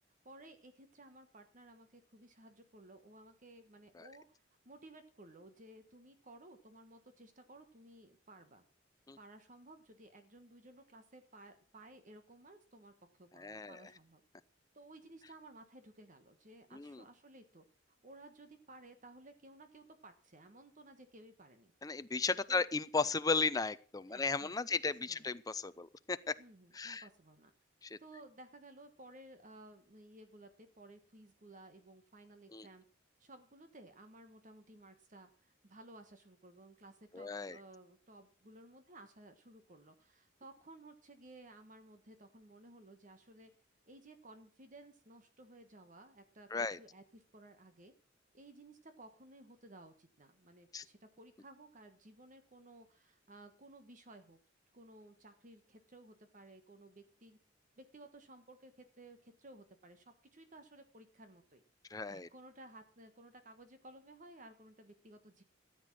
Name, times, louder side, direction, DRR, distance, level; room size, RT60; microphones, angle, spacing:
voice 1, 0.2-8.6 9.2-14.2 14.7-21.7 22.5-22.6 24.1-25.3 26.4-27.5 28.0-32.8 33.2-43.5 43.9-47.9 48.3-54.4 54.7-57.4 57.8-61.6 62.1-65.4, right 2 dB, 40° right, 8 dB, 1.4 m, -57 dB
voice 2, 13.4-13.9 16.7-17.0 21.8-26.3 26.7-27.0 27.8-28.0 32.5-32.7 37.1-37.6 46.5-46.8 50.7-50.8 61.9-62.3, left 4 dB, 20° left, 13 dB, 0.5 m, -35 dB
14.0 x 8.2 x 6.3 m, 0.41 s
head